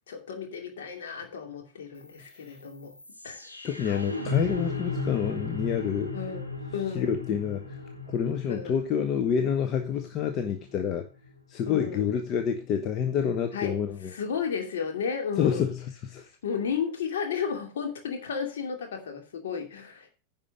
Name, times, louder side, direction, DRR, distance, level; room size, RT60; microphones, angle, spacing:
voice 1, 0.1-3.0 3.2-3.5 6.1-6.4 6.7-7.1 8.5-8.8 11.7-12.0 13.5-13.8 14.1-15.7 16.4-20.1, left 6 dB, 60° left, 2.6 m, -33 dB
sound 1, 2.0-12.0, left 3 dB, 90° left, 1.8 m, -37 dB
voice 2, 3.6-6.2 6.9-7.8 8.1-11.1 11.5-14.1 15.4-16.3, left 7 dB, 35° left, 1.0 m, -28 dB
10.5 x 5.4 x 6.9 m
figure-of-eight pair, 90°, 0 cm